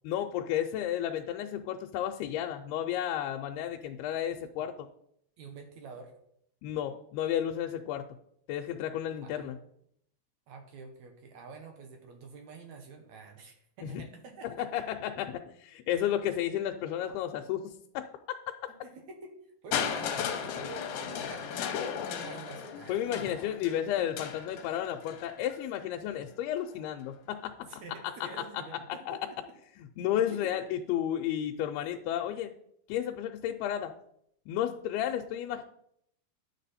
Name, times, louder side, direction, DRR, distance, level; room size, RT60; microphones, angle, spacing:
voice 1, 0.1-4.9 6.6-8.1 8.5-9.6 13.9-14.0 14.6-18.4 22.9-27.8 29.1-29.2 29.8-32.5 32.9-33.9 34.5-35.6, left 11 dB, 90° left, 3 dB, 2.6 m, -32 dB
voice 2, 5.4-6.1 9.2-9.7 10.5-14.9 18.8-23.4 27.6-29.4 30.3-30.5 30.8-30.9, right 4 dB, 65° right, 4 dB, 1.9 m, -47 dB
Crushing, 19.7-25.6 26.6-26.7, left 8 dB, 70° left, 2.1 m, -36 dB
10.5 x 7.5 x 4.2 m, 0.72 s
omnidirectional pair, 4.4 m